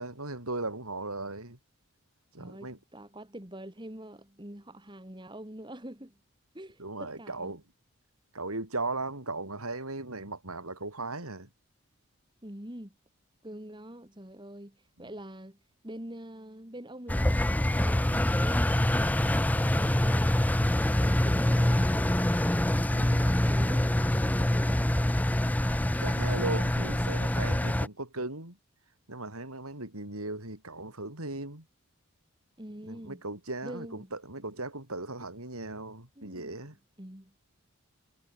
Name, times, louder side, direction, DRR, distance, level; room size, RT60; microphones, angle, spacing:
voice 1, 0.0-1.6 2.3-2.8 6.8-7.6 8.3-11.5 22.9-23.2 26.0-28.6 29.1-31.7 32.8-36.8, right 2 dB, 85° right, 7.0 m, -37 dB
voice 2, 2.4-6.2 6.5-7.6 12.4-12.9 13.4-22.5 22.8-24.8 32.6-33.2 33.6-34.1 36.2-37.3, right 1 dB, 20° right, 2.4 m, -45 dB
Engine, 17.1-27.9, left 1 dB, 5° left, 0.4 m, -25 dB
head